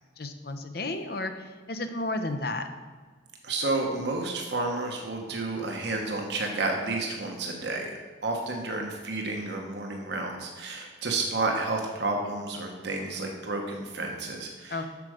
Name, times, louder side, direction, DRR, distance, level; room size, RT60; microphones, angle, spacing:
voice 1, 0.2-2.7 14.7-14.9, left 2 dB, 55° left, 7 dB, 0.7 m, -32 dB
voice 2, 3.4-7.9 8.2-14.8, right 2 dB, 65° right, 1 dB, 1.1 m, -31 dB
8.3 x 6.4 x 4.9 m, 1.5 s
head